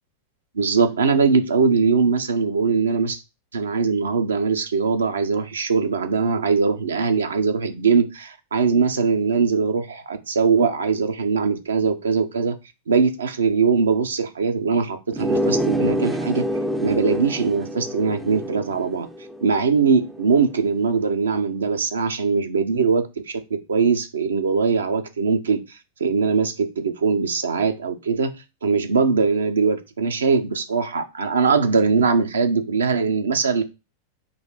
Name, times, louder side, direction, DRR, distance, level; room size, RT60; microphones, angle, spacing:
voice 1, 0.5-3.2 3.5-12.5 12.9-16.4 16.8-19.1 19.4-25.6 26.0-28.3 28.6-33.6, right 5 dB, 70° right, 0.7 m, -21 dB
sound 1, 15.1-20.4, equal, 5° right, 0.4 m, -27 dB
4.0 x 2.7 x 4.7 m
figure-of-eight pair, 90°, 0 cm